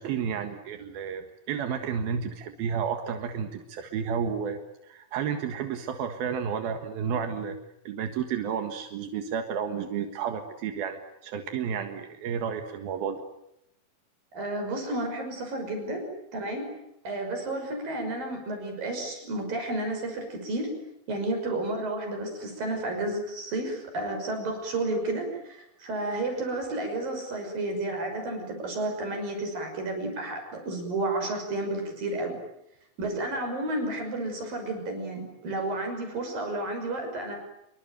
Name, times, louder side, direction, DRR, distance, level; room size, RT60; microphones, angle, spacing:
voice 1, 0.0-7.6 7.9-13.2, right 7 dB, 85° right, 6 dB, 3.6 m, -31 dB
voice 2, 14.3-16.0 16.3-16.7 17.0-20.7 21.1-32.4 33.0-37.4, right 2 dB, 70° right, 4 dB, 7.6 m, -31 dB
27.5 x 24.0 x 9.1 m, 0.82 s
omnidirectional pair, 4.1 m